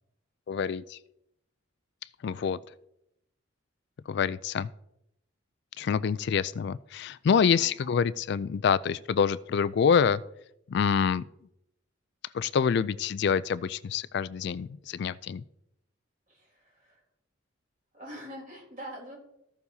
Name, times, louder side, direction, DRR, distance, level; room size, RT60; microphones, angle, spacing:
voice 1, 0.5-1.0 2.2-2.6 4.1-4.7 5.8-10.2 10.7-11.2 12.3-15.4, left 6 dB, 55° left, 17 dB, 0.3 m, -26 dB
voice 2, 7.6-7.9 16.3-17.0 17.9-19.2, equal, 40° right, -2 dB, 3.8 m, -44 dB
14.5 x 6.9 x 2.8 m, 0.81 s
head